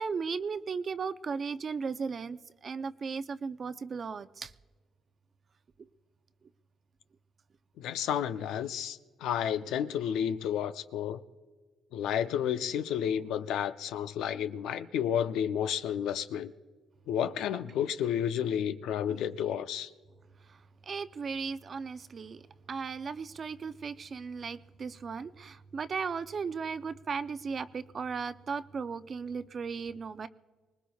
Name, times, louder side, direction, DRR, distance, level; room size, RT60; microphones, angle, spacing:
voice 1, 0.0-4.5 17.5-17.6 19.1-19.2 20.9-22.4 22.7-30.3, right 5 dB, 45° right, 0.5 m, -36 dB
voice 2, 7.8-11.2 11.9-16.5 17.1-19.9, left 9 dB, 85° left, 0.5 m, -31 dB
24.5 x 19.5 x 2.3 m
cardioid pair, 90°, 0 cm